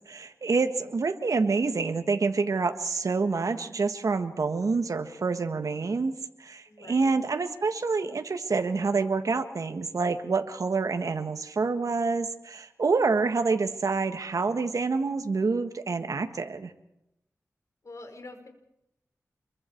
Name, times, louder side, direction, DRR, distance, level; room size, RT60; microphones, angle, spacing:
voice 1, 0.1-16.7, right 4 dB, 70° right, 7 dB, 1.7 m, -27 dB
voice 2, 6.7-7.1 17.8-18.5, left 2 dB, 60° left, 5 dB, 5.0 m, -45 dB
27.0 x 23.0 x 4.7 m, 0.81 s
wide cardioid pair, 65°, 6 cm